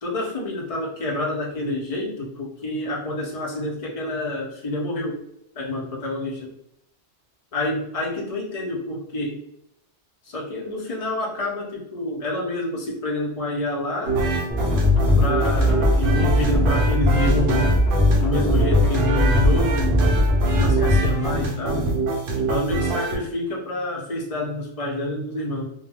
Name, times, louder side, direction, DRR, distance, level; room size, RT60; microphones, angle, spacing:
voice 1, 0.0-5.2 5.5-6.5 7.5-9.4 10.2-14.2 15.1-17.7 18.2-20.3 20.6-21.9 22.4-25.7, left 1 dB, 35° left, -3 dB, 0.6 m, -28 dB
sound 1, 14.0-23.2, right 2 dB, 55° right, 0.7 m, -24 dB
sound 2, 14.5-21.0, left 1 dB, 5° right, 0.6 m, -20 dB
2.2 x 2.2 x 3.2 m, 0.77 s
omnidirectional pair, 1.3 m